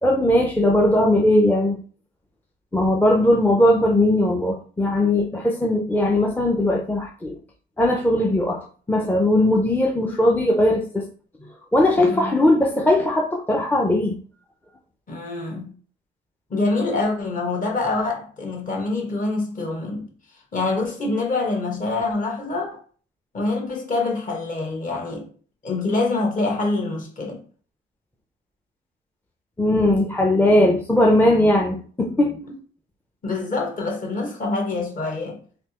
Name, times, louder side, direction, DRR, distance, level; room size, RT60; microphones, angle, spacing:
voice 1, 0.0-1.8 2.7-7.4 7.8-11.1 11.7-14.2 29.6-32.4, left 1 dB, 10° left, 0.5 m, -19 dB
voice 2, 15.1-15.7 16.5-20.1 20.5-22.8 23.3-25.3 25.6-27.4 32.5-32.6 33.2-35.4, left 3 dB, 40° left, 1.3 m, -25 dB
3.4 x 2.8 x 2.9 m
cardioid pair, 90°, 20 cm